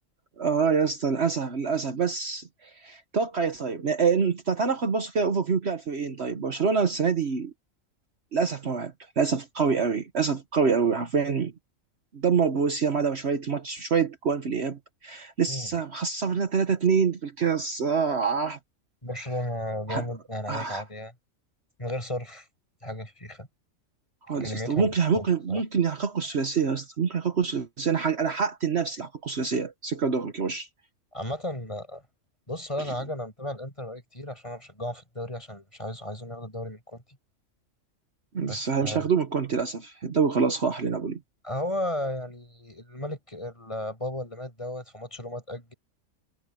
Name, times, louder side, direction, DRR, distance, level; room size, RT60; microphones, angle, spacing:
voice 1, 0.4-7.5 8.3-11.5 12.1-18.6 19.9-20.0 20.5-20.8 24.3-30.7 38.3-41.2, right 5 dB, 55° right, 1.4 m, -26 dB
voice 2, 19.0-21.1 21.8-22.5 22.8-23.5 24.3-25.6 31.1-32.0 32.5-37.0 38.4-39.1 41.4-45.7, left 1 dB, 25° left, 8.1 m, -34 dB
omnidirectional pair, 1.4 m